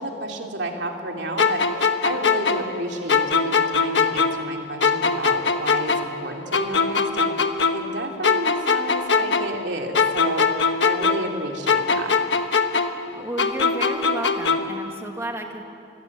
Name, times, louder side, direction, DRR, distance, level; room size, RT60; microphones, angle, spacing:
voice 1, 0.0-12.2, right 1 dB, 80° right, 2 dB, 2.9 m, -31 dB
sound 1, 1.4-4.5 4.8-8.0 8.2-11.4 11.7-14.8, left 5 dB, 85° left, 1.3 m, -22 dB
voice 2, 13.1-15.6, right 1 dB, 15° right, 2 dB, 2.0 m, -32 dB
25.5 x 21.5 x 8.5 m, 2.6 s
head